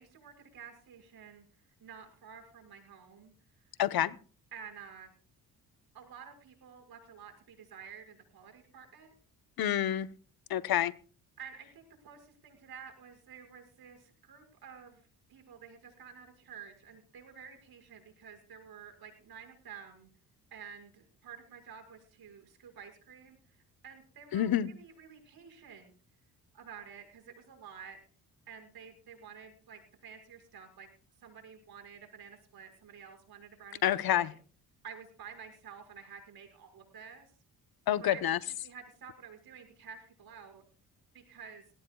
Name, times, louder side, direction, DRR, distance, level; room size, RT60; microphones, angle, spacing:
voice 1, 0.0-1.4 1.8-3.3 4.5-5.1 5.9-9.1 11.4-20.1 20.5-23.6 23.8-25.9 26.5-28.0 28.5-30.9 31.2-34.4 34.8-37.3 38.0-38.3 38.6-40.6 41.1-41.6, right 7 dB, 65° right, 6.2 m, -50 dB
voice 2, 3.8-4.2 9.6-10.1 10.5-10.9 24.3-24.7 33.8-34.3 37.9-38.4, left 11 dB, 65° left, 1.0 m, -28 dB
21.0 x 17.0 x 2.4 m
supercardioid pair, 65°, 39 cm